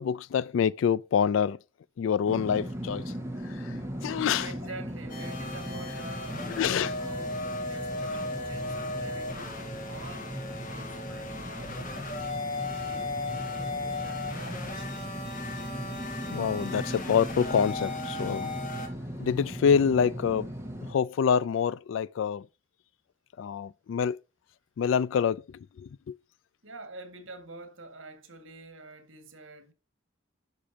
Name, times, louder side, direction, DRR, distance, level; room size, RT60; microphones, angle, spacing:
voice 1, 0.0-1.6 2.0-3.1 3.4-3.8 4.0-4.5 6.5-6.9 16.3-18.7 19.2-20.5 20.9-22.5 23.4-24.2 24.8-25.4 25.8-26.2, left 7 dB, 70° left, 0.3 m, -26 dB
sound 1, 2.2-20.9, equal, 15° right, 1.6 m, -38 dB
voice 2, 4.4-10.3 10.7-12.3 12.7-15.2 26.6-29.7, right 2 dB, 75° right, 1.9 m, -47 dB
sound 2, 5.1-18.9, left 2 dB, 45° left, 1.9 m, -36 dB
10.0 x 6.1 x 2.8 m
head